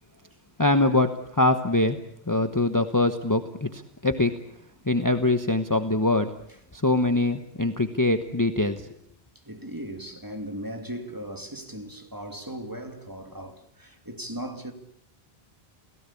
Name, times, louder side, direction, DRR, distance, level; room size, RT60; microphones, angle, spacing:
voice 1, 0.6-2.0 2.3-4.4 4.9-6.3 6.7-8.8, left 2 dB, 20° left, 1.1 m, -23 dB
voice 2, 9.4-14.7, right 1 dB, 20° right, 2.5 m, -37 dB
29.5 x 17.5 x 8.5 m
omnidirectional pair, 1.0 m